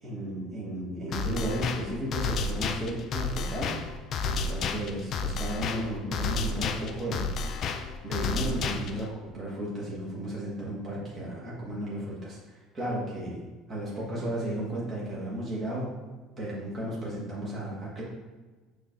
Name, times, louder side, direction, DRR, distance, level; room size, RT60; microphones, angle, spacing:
voice 1, 0.0-3.7 4.3-7.3 8.0-15.9 16.4-18.0, right 1 dB, 30° right, -6 dB, 1.4 m, -34 dB
sound 1, 1.1-9.1, left 4 dB, 40° left, 0.3 m, -31 dB
6.3 x 3.3 x 2.5 m, 1.3 s
cardioid pair, 145°, 0 cm